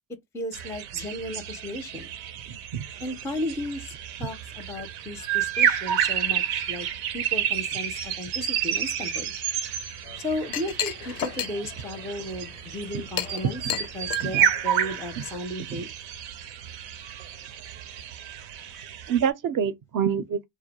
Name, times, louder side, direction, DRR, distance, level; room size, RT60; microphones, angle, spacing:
voice 1, 0.3-2.1 3.0-3.9 4.2-6.9 7.1-9.3 10.2-15.9, left 1 dB, 5° left, 0.4 m, -34 dB
sound 1, 0.5-19.3, right 9 dB, 90° right, 0.6 m, -30 dB
voice 2, 2.5-2.8 13.7-13.8 14.2-14.3 19.1-20.5, right 8 dB, 45° right, 0.5 m, -26 dB
Chink clink, 10.0-15.4, left 11 dB, 85° left, 0.6 m, -35 dB
2.3 x 2.1 x 2.8 m
supercardioid pair, 80°, 46 cm